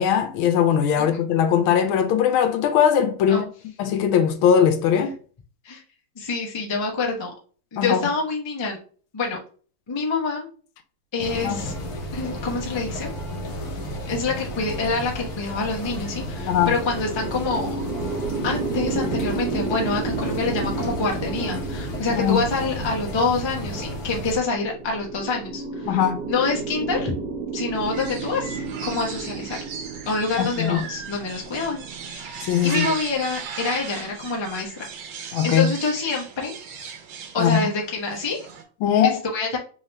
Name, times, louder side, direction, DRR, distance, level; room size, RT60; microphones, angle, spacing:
voice 1, 0.0-3.4 3.8-5.1 7.8-8.0 11.4-11.6 16.5-16.7 22.1-22.4 25.9-26.3 30.4-30.8 32.5-32.9 35.3-35.7 37.4-37.7 38.8-39.2, left 8 dB, 85° left, 1.4 m, -20 dB
voice 2, 6.2-7.3 7.7-8.8 9.1-9.4 9.9-10.5 11.1-11.7 12.1-13.1 14.1-17.7 18.4-26.0 26.3-27.1 27.5-28.6 28.8-29.6 30.0-31.8 32.1-34.8 35.2-36.5 37.3-38.5 39.0-39.6, left 3 dB, 45° left, 0.3 m, -26 dB
sound 1, 11.2-24.4, equal, 60° left, 1.1 m, -33 dB
sound 2, 16.1-33.5, right 4 dB, 60° right, 1.1 m, -33 dB
sound 3, 27.7-38.6, right 6 dB, 85° right, 1.7 m, -37 dB
3.9 x 3.2 x 2.7 m
omnidirectional pair, 2.2 m